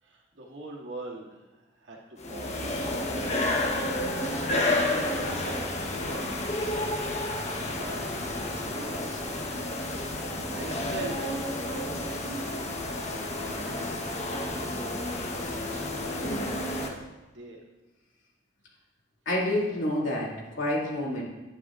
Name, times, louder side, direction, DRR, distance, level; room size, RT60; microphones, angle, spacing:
voice 1, 0.0-2.8 3.5-4.0 4.7-6.3 7.7-8.1 8.4-9.4 9.8-12.2 13.0-13.6 14.2-15.1 15.5-16.2 17.3-17.6, right 2 dB, 70° right, -4 dB, 2.3 m, -43 dB
sound 1, 2.2-16.9, left 1 dB, 35° left, 1.1 m, -30 dB
voice 2, 19.3-21.2, left 1 dB, 75° left, -4 dB, 2.6 m, -29 dB
11.0 x 10.5 x 2.5 m, 1.1 s
head